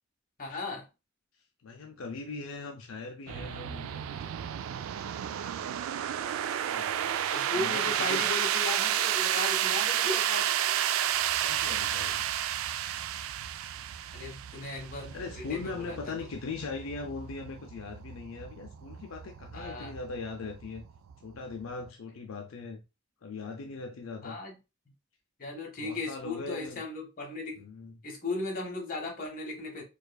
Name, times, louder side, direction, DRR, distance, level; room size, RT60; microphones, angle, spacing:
voice 1, 0.4-0.9 7.3-10.5 14.1-16.1 19.5-20.0 24.2-24.5 25.4-27.6 28.0-29.8, left 3 dB, 45° left, 1.2 m, -36 dB
voice 2, 1.6-4.4 6.6-8.3 11.4-12.3 15.1-20.8 21.2-22.8 23.2-24.4 25.8-26.8 27.6-28.0, left 4 dB, 80° left, 0.5 m, -40 dB
sound 1, 3.3-21.9, right 10 dB, 90° right, 0.3 m, -32 dB
4.5 x 2.4 x 2.3 m
head